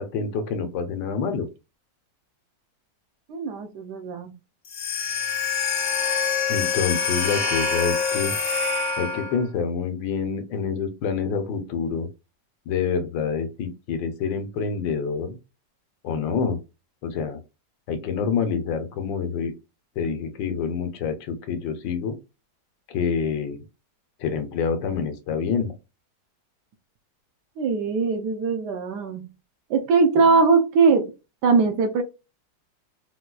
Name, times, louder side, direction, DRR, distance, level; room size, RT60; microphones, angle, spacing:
voice 1, 0.0-1.5 6.5-8.3 9.0-12.1 12.7-15.4 16.0-16.6 17.0-17.4 17.9-19.5 20.0-22.1 22.9-23.6 24.2-25.7, left 6 dB, 80° left, 1.4 m, -27 dB
voice 2, 3.3-4.3 27.6-29.3 29.7-31.1 31.4-32.0, right 4 dB, 70° right, 1.1 m, -21 dB
sound 1, 4.6-9.4, left 5 dB, 60° left, 0.5 m, -25 dB
4.2 x 2.3 x 2.3 m
omnidirectional pair, 2.0 m